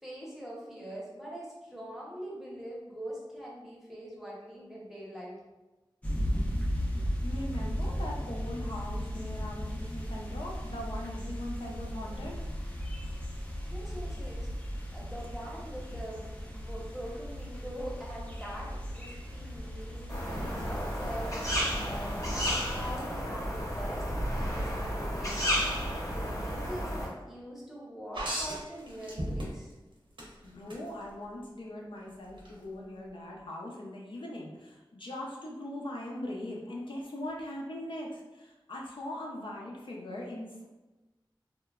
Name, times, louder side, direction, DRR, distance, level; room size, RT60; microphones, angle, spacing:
voice 1, 0.0-5.4 13.6-14.5 14.9-29.7, equal, 5° right, -6 dB, 0.8 m, -43 dB
sound 1, 6.0-23.0, equal, 15° left, 0.4 m, -36 dB
voice 2, 7.2-12.4 30.4-40.6, left 1 dB, 70° left, -3 dB, 0.5 m, -40 dB
sound 2, 20.1-27.1, equal, 40° left, 0.8 m, -32 dB
sound 3, 28.1-29.8 30.2-30.8 32.4-32.5, right 1 dB, 70° right, 0.7 m, -35 dB
2.9 x 2.1 x 2.3 m, 1.1 s
wide cardioid pair, 70°, 9 cm